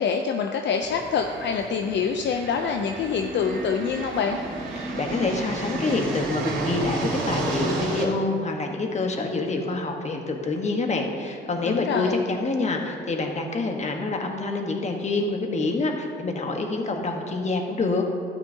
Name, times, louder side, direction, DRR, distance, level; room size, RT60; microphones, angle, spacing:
voice 1, 0.0-4.4 11.6-12.2, left 6 dB, 65° left, 4 dB, 0.6 m, -26 dB
sound 1, 0.8-8.0, right 2 dB, 85° right, 2.2 m, -31 dB
voice 2, 5.0-18.0, left 3 dB, 35° left, 3 dB, 1.2 m, -26 dB
12.0 x 9.2 x 2.8 m, 2.2 s
cardioid pair, 90°, 20 cm